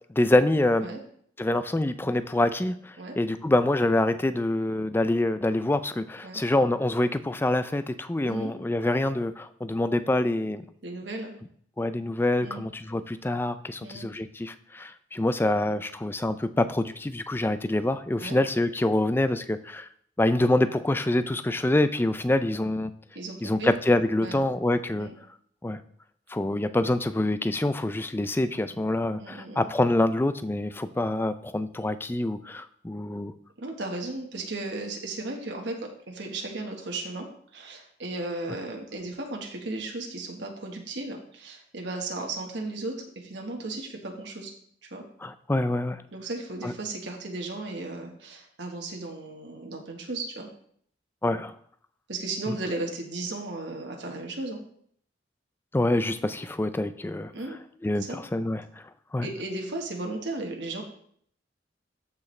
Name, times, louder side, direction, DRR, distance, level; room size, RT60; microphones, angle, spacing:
voice 1, 0.2-0.9 1.4-10.6 11.8-19.9 20.2-22.9 23.4-25.1 25.6-25.8 26.3-33.3 45.2-46.0 46.6-46.7 51.2-51.6 52.5-52.6 55.7-57.3 57.8-58.6 59.1-59.3, left 1 dB, 10° left, 11 dB, 0.4 m, -26 dB
voice 2, 10.8-11.3 12.4-12.6 13.8-14.1 18.2-18.4 23.1-23.7 24.2-24.5 25.0-25.1 29.2-29.7 33.6-44.5 44.8-45.0 46.1-50.5 52.1-54.6 57.3-57.6 58.0-58.2 59.2-60.8, right 2 dB, 70° right, 2 dB, 1.3 m, -35 dB
13.5 x 4.8 x 3.2 m, 0.63 s
head